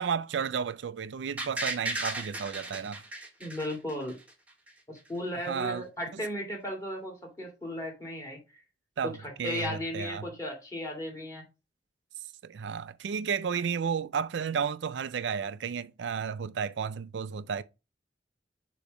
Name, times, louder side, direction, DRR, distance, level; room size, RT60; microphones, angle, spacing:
voice 1, 0.0-3.0 5.3-5.8 6.1-6.2 9.0-10.3 12.4-17.6, right 6 dB, 75° right, 0.4 m, -32 dB
sound 1, 1.4-4.3 4.7-4.8, right 2 dB, 10° right, 1.2 m, -35 dB
voice 2, 3.4-4.2 4.9-8.6 9.2-11.4, left 1 dB, 20° left, 2.4 m, -36 dB
6.8 x 3.1 x 5.1 m
head